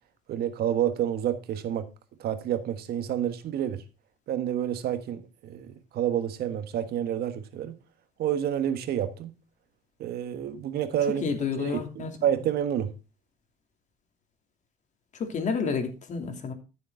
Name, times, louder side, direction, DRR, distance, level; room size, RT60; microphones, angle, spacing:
voice 1, 0.3-1.9 2.2-3.8 4.3-7.8 8.2-9.3 10.0-11.2 11.6-12.9, right 10 dB, 70° right, 1.5 m, -29 dB
voice 2, 11.2-12.1 15.1-16.5, left 5 dB, 45° left, 3.0 m, -30 dB
13.5 x 7.0 x 3.8 m
cardioid pair, 110°, 17 cm